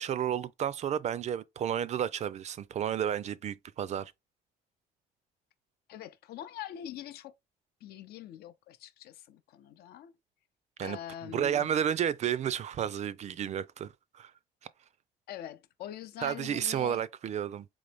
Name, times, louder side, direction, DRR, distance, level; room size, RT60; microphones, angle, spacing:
voice 1, 0.0-4.1 10.8-11.0 11.3-14.3 16.2-17.7, right 9 dB, 45° right, 0.4 m, -31 dB
voice 2, 5.9-7.3 7.8-10.1 10.8-11.7 15.3-17.0, left 11 dB, 70° left, 0.5 m, -44 dB
3.9 x 3.0 x 3.3 m
cardioid pair, 110°, 17 cm